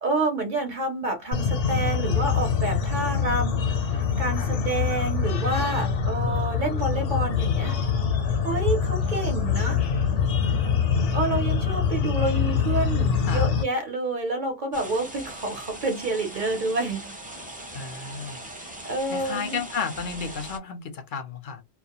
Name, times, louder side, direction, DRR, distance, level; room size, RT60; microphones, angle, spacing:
voice 1, 0.0-7.7 8.4-9.9 11.1-17.1 18.5-19.6, right 2 dB, 50° right, 0.7 m, -28 dB
sound 1, 1.3-13.6, left 6 dB, 85° left, 1.0 m, -24 dB
voice 2, 9.0-9.3 13.3-13.5 17.7-18.4 19.1-21.6, left 5 dB, 60° left, 0.6 m, -33 dB
sound 2, 14.7-20.6, right 1 dB, 10° right, 0.4 m, -40 dB
2.3 x 2.1 x 2.8 m
omnidirectional pair, 1.2 m